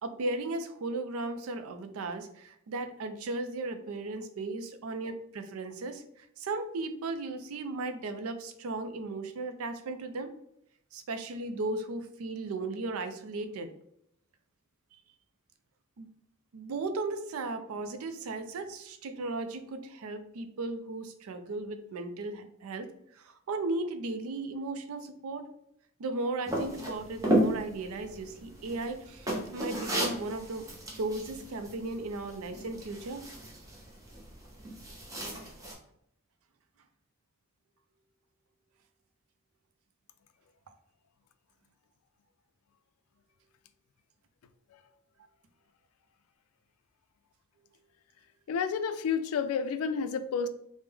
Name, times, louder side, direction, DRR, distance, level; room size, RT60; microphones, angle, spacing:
voice 1, 0.0-10.3 10.9-13.7 16.0-16.1 16.5-25.4 26.0-30.7 31.0-33.2, right 2 dB, 90° right, 8 dB, 0.4 m, -36 dB
sound 1, 26.5-35.7, right 1 dB, 15° right, 0.6 m, -34 dB
voice 2, 48.5-50.5, left 6 dB, 90° left, 11 dB, 0.3 m, -30 dB
3.3 x 2.1 x 3.3 m, 0.74 s
head